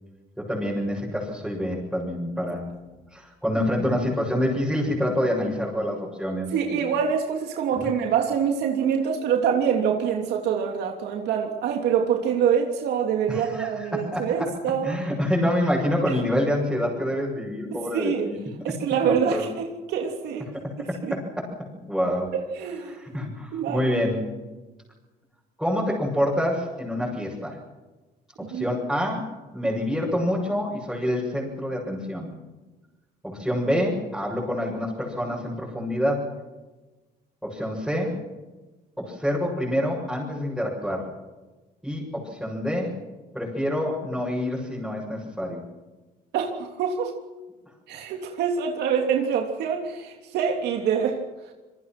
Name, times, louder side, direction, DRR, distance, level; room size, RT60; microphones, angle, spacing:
voice 1, 0.4-2.7 3.1-6.9 7.7-7.9 13.3-14.5 14.8-18.4 19.0-19.5 20.5-21.5 21.8-22.4 22.9-24.3 25.6-27.6 28.5-32.3 33.2-36.3 37.4-38.2 39.0-41.1 41.8-43.0 43.3-45.6, equal, ahead, -6 dB, 7.6 m, -27 dB
voice 2, 6.5-15.0 17.7-18.3 18.6-20.5 21.0-21.1 22.6-23.9 28.5-28.7 46.3-47.1 47.9-51.2, right 7 dB, 75° right, 2 dB, 3.2 m, -25 dB
27.5 x 22.5 x 6.2 m, 1.2 s
cardioid pair, 110°, 17 cm